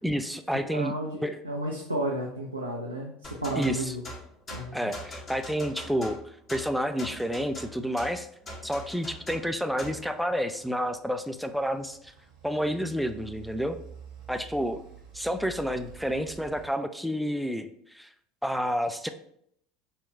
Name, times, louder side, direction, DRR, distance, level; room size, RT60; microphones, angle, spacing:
voice 1, 0.0-0.9 1.2-1.4 3.5-3.9 4.7-6.2 6.5-8.3 8.6-12.1 12.4-13.8 14.3-14.8 15.1-18.1 18.4-19.1, equal, ahead, 8 dB, 0.3 m, -29 dB
voice 2, 0.7-4.0 4.5-4.9, right 1 dB, 90° right, -2 dB, 0.5 m, -33 dB
sound 1, 3.2-10.1, left 1 dB, 30° left, 1.0 m, -42 dB
sound 2, 9.7-16.7, right 6 dB, 65° right, 1.0 m, -49 dB
4.3 x 2.3 x 4.4 m, 0.69 s
figure-of-eight pair, 70°, 0 cm